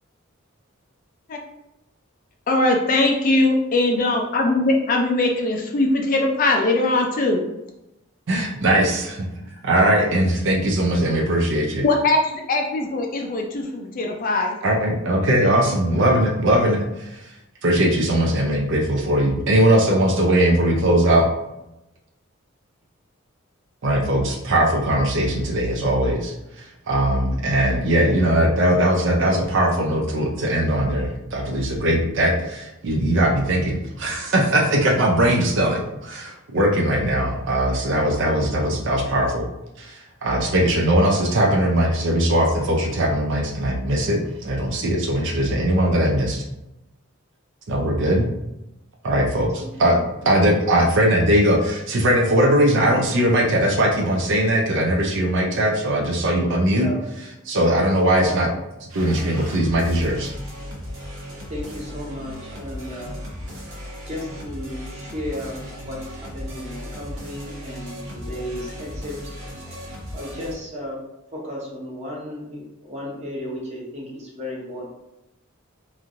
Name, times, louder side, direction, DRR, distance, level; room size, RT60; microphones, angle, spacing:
voice 1, 2.5-7.4 11.8-14.6, left 2 dB, 40° left, 2 dB, 0.4 m, -20 dB
voice 2, 8.3-9.1 9.6-11.8 14.6-17.3 17.6-21.3 23.8-39.5 39.8-46.4 47.7-48.3 49.0-50.0 50.3-56.9 57.5-58.5 58.9-60.3, right 1 dB, 60° right, 1 dB, 0.5 m, -20 dB
voice 3, 49.6-50.0 56.1-56.2 56.7-57.0 58.2-58.5 61.5-63.2 64.0-69.4 70.1-71.0 71.3-74.8, left 1 dB, 35° right, -4 dB, 0.8 m, -34 dB
sound 1, 58.9-70.5, equal, 85° right, 0.8 m, -36 dB
3.0 x 2.5 x 2.5 m, 0.91 s
head